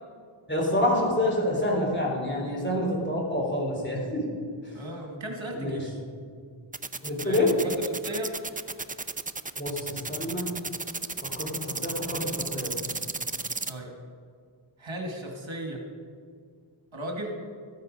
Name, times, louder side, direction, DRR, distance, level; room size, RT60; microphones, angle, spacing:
voice 1, 0.5-4.2 5.5-5.8 7.0-7.5 9.6-10.5 11.3-12.7, left 1 dB, 20° left, -3 dB, 3.5 m, -27 dB
voice 2, 4.7-5.9 7.2-7.4 7.6-8.3 13.7-13.9 14.8-15.8 16.9-17.4, right 1 dB, 65° right, 1 dB, 1.7 m, -36 dB
sound 1, 6.7-13.7, right 3 dB, 20° right, 0.4 m, -33 dB
13.5 x 8.2 x 5.2 m, 2.1 s
wide cardioid pair, 40°, 49 cm